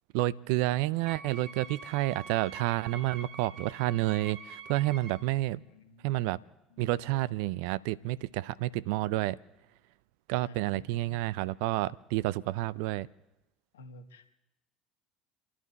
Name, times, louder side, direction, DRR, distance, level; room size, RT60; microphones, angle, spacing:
voice 1, 0.1-5.6 6.0-6.4 6.8-9.4 10.3-13.1, right 17 dB, 70° right, 0.4 m, -30 dB
Wind instrument woodwind instrument, 1.0-5.3, right 4 dB, 50° right, 1.7 m, -46 dB
voice 2, 5.6-6.2 10.4-11.2 13.7-14.3, left 2 dB, 85° left, 1.4 m, -53 dB
29.5 x 11.5 x 4.1 m
hypercardioid pair, 70°, 0 cm